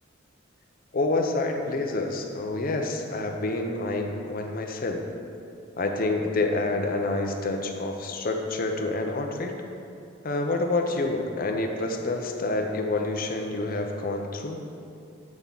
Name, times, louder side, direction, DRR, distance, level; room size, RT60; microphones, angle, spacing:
voice 1, 0.9-5.0 5.8-9.5 10.2-14.6, left 2 dB, 45° left, 3 dB, 0.6 m, -28 dB
7.9 x 3.6 x 5.4 m, 2.5 s
head